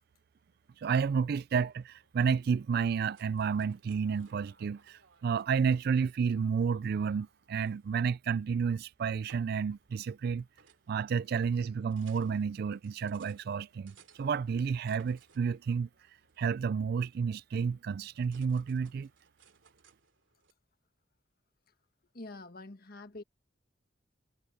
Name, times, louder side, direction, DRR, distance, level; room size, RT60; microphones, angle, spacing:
voice 1, 0.8-10.5 10.9-15.9 16.4-19.1, right 6 dB, 50° right, 0.3 m, -31 dB
sound 1, 1.7-20.5, right 5 dB, 70° right, 2.8 m, -65 dB
voice 2, 22.1-23.2, left 2 dB, 50° left, 1.5 m, -46 dB
head